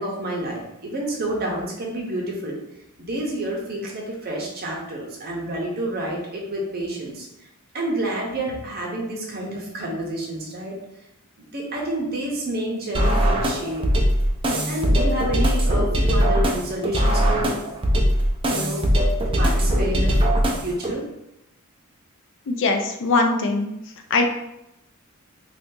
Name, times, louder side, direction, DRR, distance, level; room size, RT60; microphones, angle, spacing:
voice 1, 0.0-2.6 3.0-7.3 7.7-10.7 11.4-13.9 14.7-17.5 18.5-18.8 19.3-20.1 20.6-21.1, right 1 dB, 45° right, -1 dB, 0.7 m, -29 dB
sound 1, 12.9-20.9, equal, 25° right, 0.4 m, -20 dB
voice 2, 22.5-23.7 24.1-24.3, left 3 dB, 55° left, 4 dB, 0.4 m, -21 dB
2.7 x 2.4 x 3.7 m, 0.85 s
head